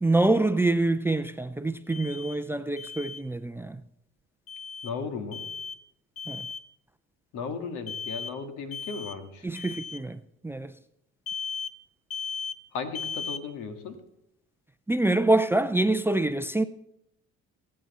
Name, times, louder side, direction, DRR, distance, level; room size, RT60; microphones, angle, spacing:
voice 1, 0.0-3.8 6.3-6.5 9.4-10.7 14.9-16.6, right 2 dB, 10° right, 0.5 m, -25 dB
Alarm, 1.9-2.4 2.8-3.2 4.5-4.9 5.3-5.8 6.2-6.7 7.9-8.4 8.7-9.2 9.6-10.0 11.3-11.8 12.1-12.6 13.0-13.4, left 6 dB, 50° left, 0.7 m, -36 dB
voice 2, 4.8-5.4 7.3-9.5 12.7-14.0, left 5 dB, 75° left, 1.9 m, -35 dB
19.0 x 8.7 x 4.2 m
supercardioid pair, 80°, 31 cm